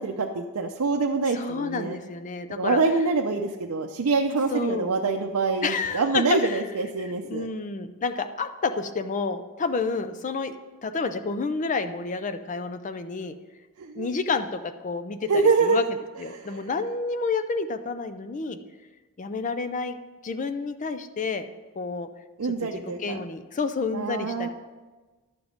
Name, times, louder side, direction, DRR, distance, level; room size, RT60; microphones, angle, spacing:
voice 1, 0.0-2.0 2.5-7.5 13.8-14.1 15.3-15.9 16.3-16.6 22.4-23.2 23.9-24.5, right 4 dB, 75° right, 1 dB, 0.6 m, -25 dB
voice 2, 1.3-2.8 4.5-4.9 5.6-6.6 7.3-10.6 10.8-13.3 14.0-15.3 15.6-15.8 16.2-18.6 19.2-20.0 20.2-21.4 21.8-22.1 22.7-24.5, left 4 dB, 35° left, 10 dB, 0.4 m, -29 dB
11.0 x 7.1 x 5.1 m, 1.3 s
head